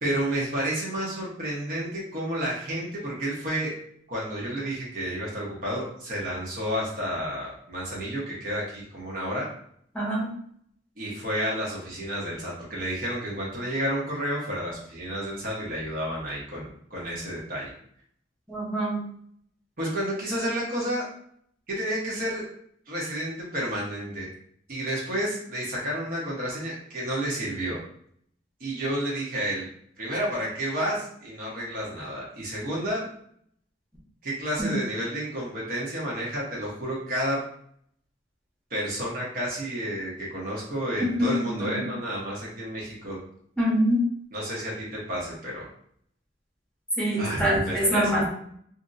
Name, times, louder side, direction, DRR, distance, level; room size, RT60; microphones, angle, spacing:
voice 1, 0.0-3.7 4.1-9.5 11.0-17.7 19.8-21.1 21.7-22.4 22.9-24.3 24.7-27.8 28.6-29.6 30.0-33.1 34.2-37.4 38.7-43.2 44.3-45.7 47.2-48.3, equal, 50° right, -5 dB, 1.0 m, -30 dB
voice 2, 9.9-10.3 18.5-19.0 34.6-34.7 41.2-41.5 43.6-44.0 47.0-48.3, equal, 5° left, -6 dB, 0.9 m, -24 dB
2.8 x 2.6 x 2.6 m, 0.65 s
head